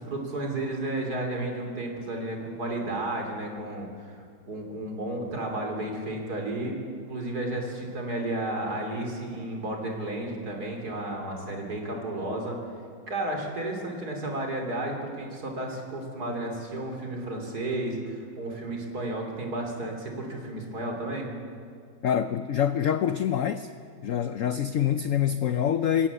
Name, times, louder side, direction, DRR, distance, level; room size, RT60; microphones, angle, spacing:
voice 1, 0.0-4.2 4.5-6.8 7.1-12.6 13.1-21.3, right 1 dB, 55° right, 3.5 m, -32 dB
voice 2, 22.0-23.7 24.0-26.1, left 9 dB, 75° left, 0.7 m, -25 dB
19.0 x 17.5 x 8.2 m
omnidirectional pair, 2.1 m